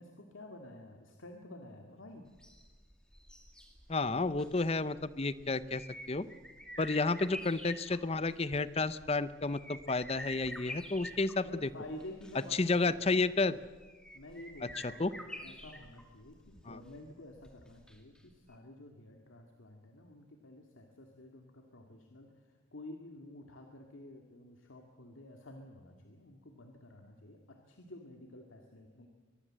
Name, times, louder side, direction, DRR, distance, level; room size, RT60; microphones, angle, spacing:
voice 1, 0.0-2.3 11.4-13.1 14.1-29.1, left 1 dB, 85° left, 3 dB, 2.1 m, -50 dB
sound 1, 2.3-18.2 18.5-18.6, equal, 5° left, 2.2 m, -49 dB
voice 2, 3.9-5.8 6.1-6.3 6.8-11.7 12.6-13.5 14.8-15.1 16.7-16.8, left 3 dB, 30° left, 16 dB, 0.7 m, -31 dB
23.0 x 22.0 x 7.6 m, 1.3 s
head